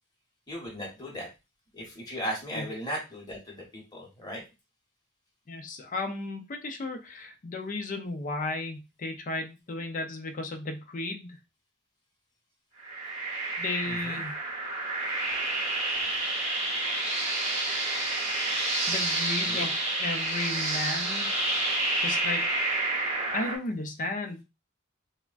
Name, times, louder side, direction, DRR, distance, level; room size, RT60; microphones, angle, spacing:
voice 1, 0.5-1.3 1.7-4.4 13.8-14.2 19.5-19.7, equal, 20° left, -2 dB, 1.1 m, -37 dB
voice 2, 5.5-11.4 13.6-14.3 18.9-19.7 20.0-21.3 22.0-22.4 23.3-24.4, left 2 dB, 40° left, 5 dB, 0.5 m, -34 dB
sound 1, 12.8-23.6, right 2 dB, 35° right, 0.9 m, -29 dB
3.3 x 2.1 x 2.4 m, 0.27 s
head